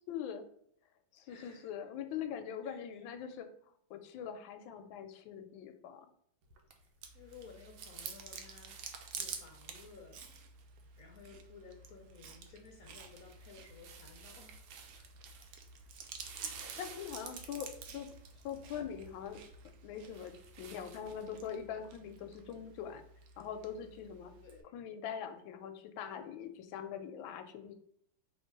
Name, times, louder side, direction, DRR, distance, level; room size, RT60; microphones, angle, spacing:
voice 1, 0.1-0.4 1.1-3.5 3.9-6.1 16.8-18.1 18.4-19.4 19.8-23.0 23.4-24.3 24.7-27.7, left 8 dB, 85° left, 8 dB, 1.3 m, -43 dB
voice 2, 1.2-1.7 2.6-2.8 6.8-6.9 7.1-8.9 9.2-10.2 11.0-15.2 16.6-17.1 24.4-24.7, left 5 dB, 65° left, 2 dB, 0.9 m, -56 dB
sound 1, 6.4-21.6, right 5 dB, 85° right, 1.4 m, -56 dB
Chewing mastication, 7.0-24.6, right 6 dB, 70° right, 1.0 m, -50 dB
3.6 x 2.9 x 4.5 m, 0.67 s
omnidirectional pair, 2.1 m